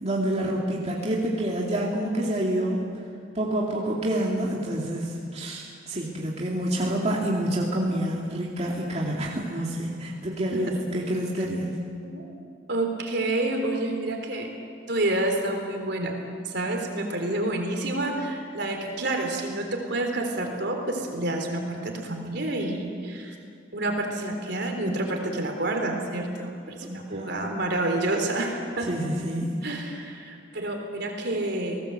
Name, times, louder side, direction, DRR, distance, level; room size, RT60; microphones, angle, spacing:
voice 1, 0.0-2.8 3.3-11.8 27.1-27.5 28.9-29.6, right 1 dB, 35° right, -3 dB, 2.6 m, -28 dB
voice 2, 12.7-14.5 14.9-23.4 23.7-28.9 29.6-31.8, right 2 dB, 60° right, 3 dB, 3.8 m, -29 dB
29.0 x 19.0 x 7.9 m, 2.4 s
head